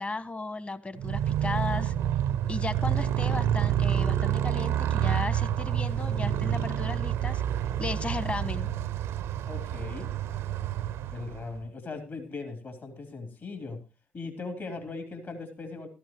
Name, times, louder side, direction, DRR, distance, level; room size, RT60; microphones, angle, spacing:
voice 1, 0.0-1.9 2.5-7.4 7.8-8.7, left 3 dB, 30° left, 14 dB, 1.3 m, -35 dB
Motorcycle, 1.0-11.6, right 10 dB, 75° right, 0.6 m, -28 dB
voice 2, 9.4-10.1 11.1-13.8 14.1-15.9, left 3 dB, 55° left, 6 dB, 3.6 m, -39 dB
16.0 x 14.0 x 3.1 m, 0.30 s
hypercardioid pair, 45°, 5 cm